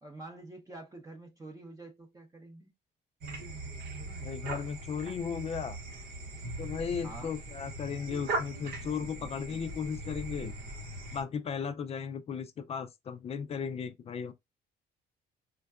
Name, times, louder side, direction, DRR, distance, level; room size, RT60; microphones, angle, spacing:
voice 1, 0.0-2.7 7.0-7.3, right 2 dB, 20° right, 0.6 m, -47 dB
sound 1, 3.2-11.2, right 2 dB, 70° right, 1.0 m, -40 dB
voice 2, 4.2-5.8 6.6-10.5 11.1-14.3, left 6 dB, 40° left, 0.4 m, -36 dB
4.4 x 2.2 x 2.2 m
cardioid pair, 110°, 17 cm